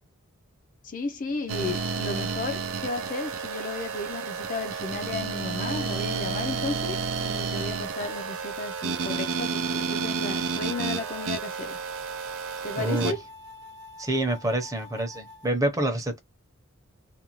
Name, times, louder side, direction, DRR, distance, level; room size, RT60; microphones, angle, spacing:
voice 1, 0.8-11.8 12.6-13.2, left 3 dB, 40° left, 0.4 m, -34 dB
sound 1, 1.5-13.1, right 5 dB, 85° right, 0.5 m, -31 dB
sound 2, 7.9-15.5, left 2 dB, 55° right, 0.8 m, -46 dB
voice 2, 12.8-13.1 14.0-16.2, right 1 dB, 15° right, 0.7 m, -27 dB
2.6 x 2.2 x 2.9 m
head